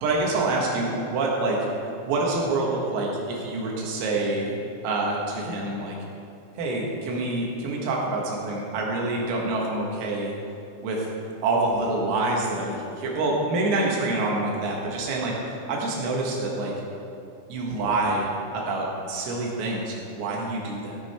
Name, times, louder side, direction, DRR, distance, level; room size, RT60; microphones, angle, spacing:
voice 1, 0.0-1.7 2.0-4.5 4.8-6.0 6.6-10.3 10.8-11.1 11.4-16.7 17.5-18.3 18.5-21.0, right 2 dB, 85° right, -2 dB, 4.5 m, -26 dB
16.0 x 9.0 x 4.5 m, 2.6 s
omnidirectional pair, 5.9 m